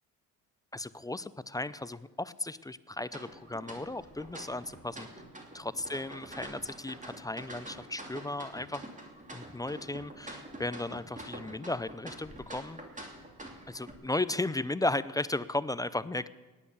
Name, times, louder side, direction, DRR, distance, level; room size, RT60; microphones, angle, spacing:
voice 1, 0.7-5.1 5.5-8.8 9.3-12.8 13.7-16.3, left 2 dB, 10° left, 16 dB, 0.5 m, -35 dB
sound 1, 3.1-13.9, right 1 dB, 20° right, 2.8 m, -46 dB
17.0 x 10.0 x 6.9 m, 1.2 s
cardioid pair, 85°, 36 cm